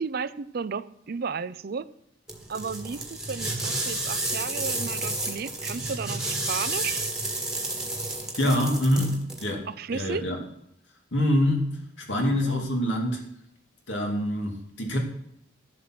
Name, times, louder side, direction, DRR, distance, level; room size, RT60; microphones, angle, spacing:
voice 1, 0.0-1.9 2.5-7.1 9.7-10.2 12.2-12.7, right 5 dB, 50° right, 0.5 m, -34 dB
sound 1, 2.3-9.5, right 2 dB, 5° right, 1.6 m, -31 dB
voice 2, 8.3-10.4 11.1-13.3 13.9-15.0, left 1 dB, 70° left, 2.6 m, -26 dB
12.5 x 7.5 x 6.0 m
head